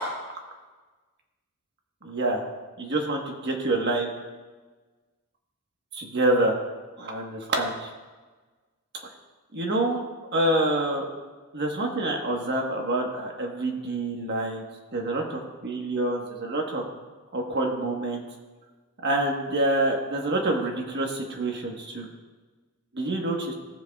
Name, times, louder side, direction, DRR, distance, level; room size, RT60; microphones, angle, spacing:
voice 1, 2.0-2.4 2.8-4.1 5.9-6.6 7.0-7.9 9.5-10.0 10.3-11.1 11.5-14.6 14.9-16.8 17.3-18.2 19.0-22.1 22.9-23.5, right 2 dB, 50° right, 1 dB, 1.4 m, -27 dB
17.0 x 7.7 x 2.4 m, 1.3 s
head